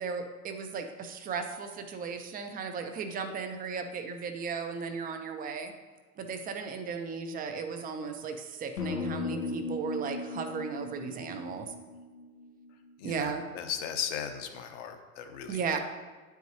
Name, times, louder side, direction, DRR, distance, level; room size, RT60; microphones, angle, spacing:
voice 1, 0.0-5.7 6.2-11.7 13.0-13.5 15.5-15.8, right 5 dB, 20° right, 6 dB, 0.5 m, -35 dB
sound 1, 8.8-12.9, left 3 dB, 90° left, 0.9 m, -37 dB
voice 2, 13.0-15.6, left 8 dB, 55° left, 6 dB, 0.9 m, -37 dB
9.1 x 4.7 x 2.7 m, 1.3 s
hypercardioid pair, 110°, 44 cm